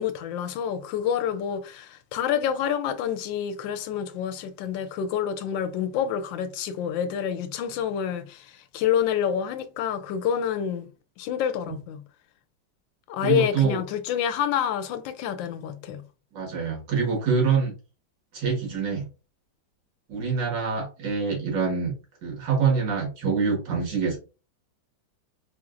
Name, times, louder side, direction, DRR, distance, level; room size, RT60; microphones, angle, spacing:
voice 1, 0.0-10.9 11.2-12.0 13.1-16.0, left 9 dB, 85° left, 1.3 m, -28 dB
voice 2, 13.2-13.8 16.3-17.7 18.3-19.1 20.1-21.9 22.2-24.2, right 5 dB, 75° right, 2.1 m, -25 dB
4.3 x 2.9 x 2.5 m
omnidirectional pair, 2.0 m